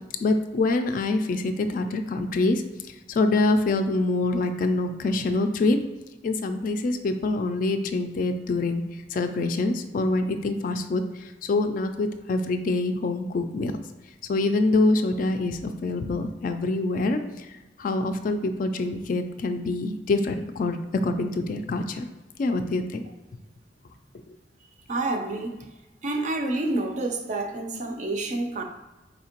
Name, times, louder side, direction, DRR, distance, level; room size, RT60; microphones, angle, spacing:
voice 1, 0.2-2.6 3.1-5.8 6.2-8.8 9.1-13.8 14.3-17.5 17.8-22.1 22.4-23.0, left 2 dB, 50° left, 8 dB, 0.3 m, -25 dB
voice 2, 24.9-25.7 26.0-28.6, right 2 dB, 45° right, 4 dB, 0.4 m, -28 dB
4.2 x 2.8 x 2.9 m, 1.1 s
head